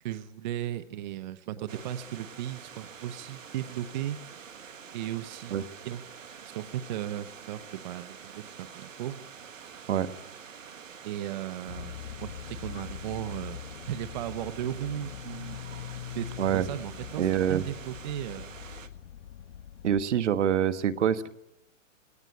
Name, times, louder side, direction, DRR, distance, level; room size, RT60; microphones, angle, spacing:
voice 1, 0.0-4.2 4.9-6.0 6.4-9.2 11.0-11.9 12.2-13.6 13.8-15.6 16.1-18.5, right 12 dB, 35° right, 13 dB, 0.7 m, -36 dB
sound 1, 1.7-18.9, right 7 dB, 80° right, 1.6 m, -47 dB
sound 2, 11.7-20.0, left 10 dB, 65° left, 1.1 m, -42 dB
voice 2, 17.2-17.6 19.8-21.3, right 9 dB, 60° right, 13 dB, 1.3 m, -25 dB
20.0 x 18.0 x 9.7 m, 0.88 s
hypercardioid pair, 140°, 39 cm